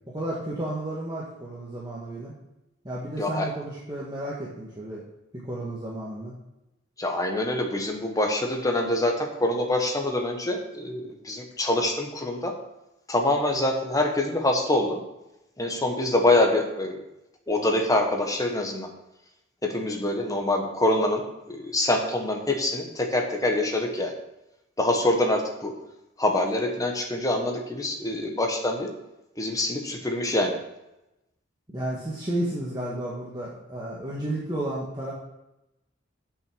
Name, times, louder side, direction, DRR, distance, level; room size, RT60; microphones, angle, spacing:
voice 1, 0.1-2.3 2.8-5.0 5.3-6.3 31.7-35.1, right 1 dB, 20° right, -6 dB, 1.5 m, -32 dB
voice 2, 3.2-3.5 7.0-12.5 13.1-15.0 15.6-17.0 17.5-18.9 19.6-24.1 24.8-25.7 26.2-28.9 29.4-30.6, left 1 dB, 20° left, 3 dB, 1.3 m, -25 dB
8.0 x 6.0 x 6.2 m, 0.93 s
head